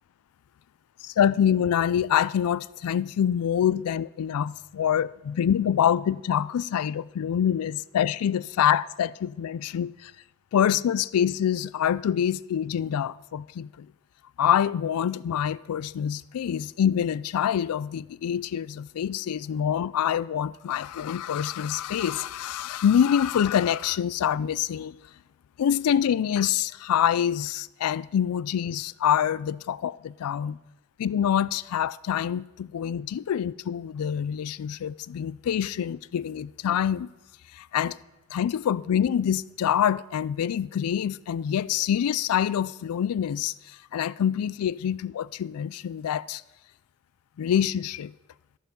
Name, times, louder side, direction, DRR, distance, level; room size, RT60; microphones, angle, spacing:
voice 1, 1.0-10.1 10.5-13.9 14.4-25.0 25.6-30.6 31.0-37.1 37.5-38.0 38.3-46.4 47.4-48.1, left 9 dB, 80° left, 0.3 m, -26 dB
13.0 x 6.9 x 5.1 m
head